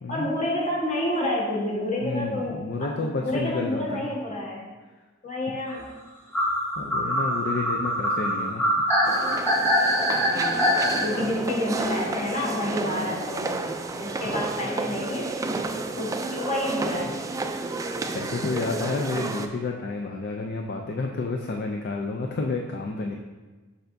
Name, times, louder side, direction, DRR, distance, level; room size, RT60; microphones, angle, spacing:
voice 1, 0.1-4.6 5.2-5.9 10.3-15.3 15.9-17.3, left 1 dB, 40° left, -4 dB, 1.3 m, -29 dB
voice 2, 2.0-4.1 6.8-8.7 17.8-23.2, left 3 dB, 55° left, 2 dB, 0.4 m, -30 dB
sound 1, 6.3-11.0, equal, 15° left, 1.5 m, -23 dB
sound 2, 9.0-19.5, right 3 dB, 15° right, 0.3 m, -31 dB
6.6 x 5.6 x 2.6 m, 1.3 s
head